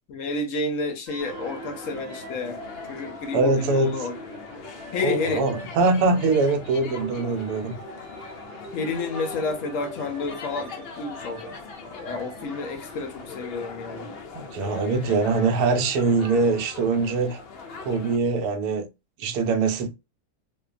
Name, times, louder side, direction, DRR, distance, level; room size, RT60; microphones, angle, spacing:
voice 1, 0.1-2.6 2.9-4.2 4.9-5.5 8.7-11.5 11.8-14.1, left 3 dB, 70° left, 0.8 m, -30 dB
sound 1, 1.1-12.5, right 1 dB, 60° right, 0.7 m, -43 dB
sound 2, 1.2-18.2, left 4 dB, 85° left, 0.5 m, -41 dB
voice 2, 3.3-3.9 5.0-7.8 14.3-17.4 17.8-18.9 19.2-19.9, right 3 dB, 90° right, 1.1 m, -23 dB
2.6 x 2.2 x 2.3 m
omnidirectional pair, 1.6 m